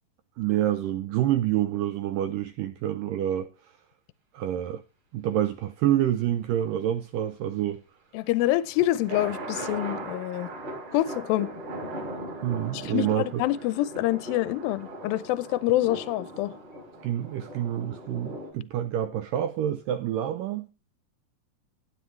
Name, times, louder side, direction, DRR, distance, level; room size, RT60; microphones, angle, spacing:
voice 1, 0.4-3.5 4.3-4.8 5.1-7.8 12.4-13.4 17.0-20.7, right 11 dB, 85° right, 1.9 m, -27 dB
voice 2, 8.1-10.5 10.9-11.5 12.7-16.5, left 15 dB, 80° left, 2.2 m, -26 dB
sound 1, 8.3-18.5, right 1 dB, 30° right, 5.4 m, -39 dB
16.5 x 9.3 x 3.2 m
omnidirectional pair, 4.7 m